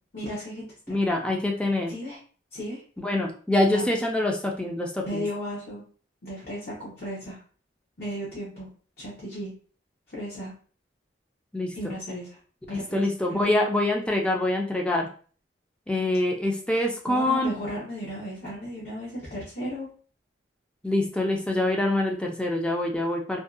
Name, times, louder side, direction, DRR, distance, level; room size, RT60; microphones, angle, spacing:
voice 1, 0.1-1.1 1.9-2.2 2.5-2.8 3.6-3.9 5.0-5.8 6.2-7.4 8.0-8.7 9.0-9.5 10.1-10.5 11.7-12.4 12.7-13.0 13.3-13.4 17.1-19.9, equal, 60° left, -8 dB, 0.8 m, -35 dB
voice 2, 0.9-1.9 3.0-5.2 11.5-12.0 12.7-15.1 15.9-17.5 20.8-23.4, left 1 dB, 5° left, 0 dB, 0.4 m, -25 dB
2.6 x 2.2 x 2.3 m, 0.41 s
head